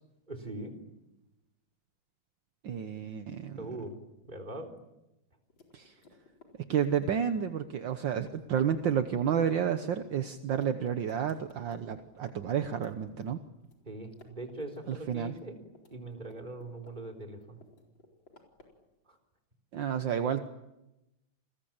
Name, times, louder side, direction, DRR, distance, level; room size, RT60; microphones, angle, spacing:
voice 1, 0.3-0.7 3.6-4.7 13.9-15.6 15.9-17.6 19.1-19.2, right 2 dB, 20° right, 3 dB, 3.9 m, -41 dB
voice 2, 2.6-3.7 5.7-5.9 6.7-13.4 14.9-15.3 19.7-20.5, right 8 dB, 65° right, 8 dB, 1.7 m, -31 dB
sound 1, 5.5-12.4 12.7-13.8 14.1-15.0 15.3-17.1 17.4-18.8, left 3 dB, 65° left, 4.9 m, -58 dB
29.0 x 21.0 x 8.8 m, 0.95 s
omnidirectional pair, 2.3 m